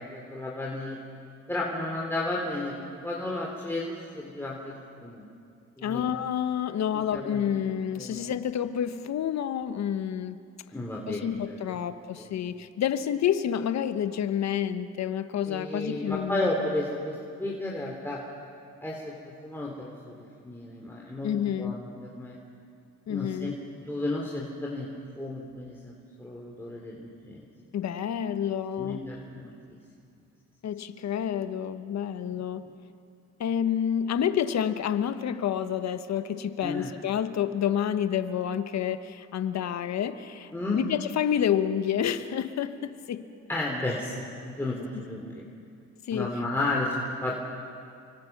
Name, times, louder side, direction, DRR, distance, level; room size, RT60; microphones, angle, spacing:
voice 1, 0.1-1.0 1.5-2.7 3.0-5.2 5.8-6.0 7.1-7.4 7.9-8.3 10.7-11.3 11.7-11.8 12.2-12.4 15.5-18.2 18.8-20.1 20.4-21.3 21.6-22.4 23.1-23.5 23.8-24.9 25.2-27.5 28.8-29.8 36.6-36.9 40.5-40.8 43.5-45.4 46.1-47.4, left 2 dB, 5° left, -3 dB, 3.4 m, -33 dB
voice 2, 5.8-10.4 11.1-16.6 21.2-21.7 23.1-23.6 27.7-29.1 30.6-32.6 33.4-43.3 46.1-46.3, left 9 dB, 65° left, 11 dB, 1.2 m, -29 dB
28.5 x 25.0 x 6.0 m, 2.4 s
cardioid pair, 90°, 30 cm